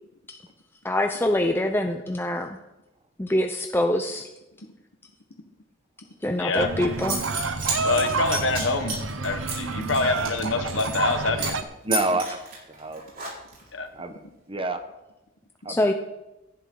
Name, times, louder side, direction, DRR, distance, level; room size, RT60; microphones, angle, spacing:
voice 1, 0.8-2.6 3.2-4.3 6.2-7.2 15.7-15.9, left 1 dB, 10° left, 5 dB, 0.6 m, -24 dB
voice 2, 6.4-6.7 7.8-9.0 9.2-11.6 13.7-13.9, left 3 dB, 65° left, 7 dB, 1.3 m, -26 dB
Zipper (clothing) / Coin (dropping), 6.6-6.7 7.0-11.1 11.4-11.6 11.9-13.7, right 3 dB, 45° right, 4.8 m, -32 dB
sound 1, 6.6-11.6, right 4 dB, 70° right, 0.8 m, -29 dB
voice 3, 11.8-12.4 12.7-13.0 13.9-14.8 15.6-15.9, right 2 dB, 25° right, 8 dB, 1.0 m, -28 dB
17.5 x 11.0 x 3.9 m, 0.99 s
head